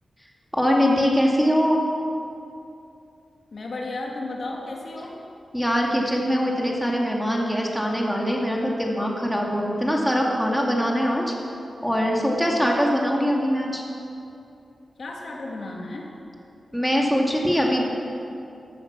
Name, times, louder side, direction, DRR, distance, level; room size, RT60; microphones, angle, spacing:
voice 1, 0.5-1.8 5.5-11.3 11.8-13.8 16.7-17.9, equal, ahead, -1 dB, 2.5 m, -22 dB
voice 2, 3.5-5.2 15.0-16.1, left 2 dB, 65° left, -1 dB, 2.3 m, -33 dB
15.0 x 12.5 x 6.3 m, 2.6 s
wide cardioid pair, 80°, 0 cm